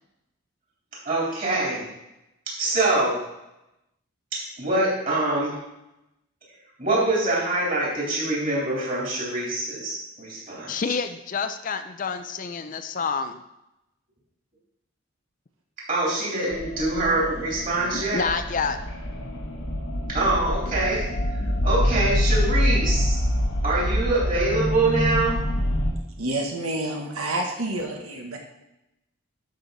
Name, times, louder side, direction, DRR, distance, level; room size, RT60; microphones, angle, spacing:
voice 1, 1.0-1.9 2.5-3.2 4.3-5.6 6.8-10.7 15.9-18.2 20.1-21.0 21.6-23.2 23.6-25.4, right 2 dB, 40° right, -5 dB, 3.7 m, -24 dB
voice 2, 10.7-13.4 17.9-18.8, left 5 dB, 40° left, 9 dB, 0.4 m, -28 dB
sound 1, 16.5-25.9, equal, 90° left, 1.7 m, -26 dB
voice 3, 26.2-28.4, right 1 dB, 80° right, 2 dB, 1.3 m, -28 dB
12.0 x 6.3 x 4.0 m, 0.89 s
head